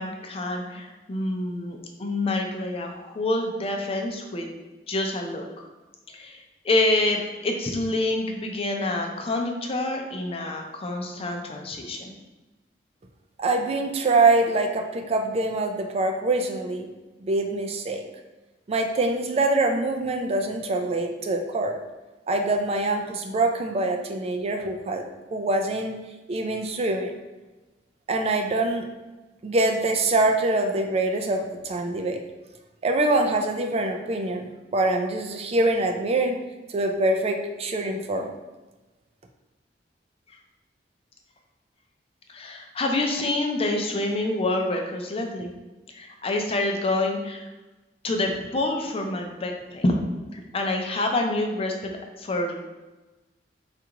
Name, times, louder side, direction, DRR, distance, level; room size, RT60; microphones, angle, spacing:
voice 1, 0.0-4.5 4.9-5.7 6.1-12.1 42.3-45.5 45.9-47.4 48.0-50.0 50.3-52.6, left 2 dB, 35° left, 2 dB, 0.5 m, -27 dB
voice 2, 13.4-16.9 17.2-18.0 18.7-21.8 22.3-26.0 26.3-27.1 28.1-28.9 29.4-32.2 32.8-36.4 36.7-38.3, right 2 dB, 35° right, 4 dB, 0.3 m, -24 dB
4.5 x 2.5 x 2.9 m, 1.1 s
head